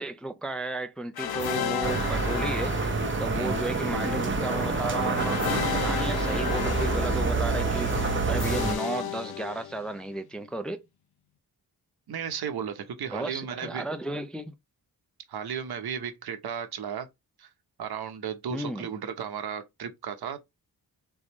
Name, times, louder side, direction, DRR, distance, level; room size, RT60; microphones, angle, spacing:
voice 1, 0.0-10.8 13.1-14.5 18.5-18.9, right 2 dB, ahead, 0.4 m, -34 dB
sound 1, 1.2-10.0, left 8 dB, 70° left, 0.7 m, -33 dB
sound 2, 1.8-8.7, right 4 dB, 30° right, 0.7 m, -28 dB
voice 2, 12.1-13.9 15.3-17.1 17.4-17.5 17.8-20.4, right 7 dB, 75° right, 0.9 m, -34 dB
3.8 x 3.5 x 3.0 m
wide cardioid pair, 140°, 38 cm